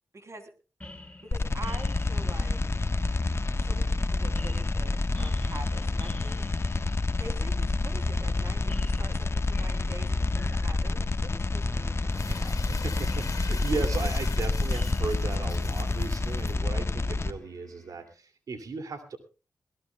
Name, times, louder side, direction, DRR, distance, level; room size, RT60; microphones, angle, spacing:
voice 1, 0.1-0.5 1.2-2.6 3.6-6.8 7.2-12.6, right 2 dB, 55° right, 8 dB, 3.0 m, -45 dB
sound 1, 0.8-18.1, left 1 dB, 20° left, 4.7 m, -49 dB
sound 2, 1.3-17.3, left 3 dB, 45° left, 1.2 m, -28 dB
Crumpling crinkling, 12.1-16.5, left 5 dB, 70° left, 2.1 m, -42 dB
voice 2, 12.7-19.2, right 4 dB, 80° right, 8 dB, 2.4 m, -36 dB
22.0 x 17.0 x 2.2 m, 0.32 s
cardioid pair, 40°, 6 cm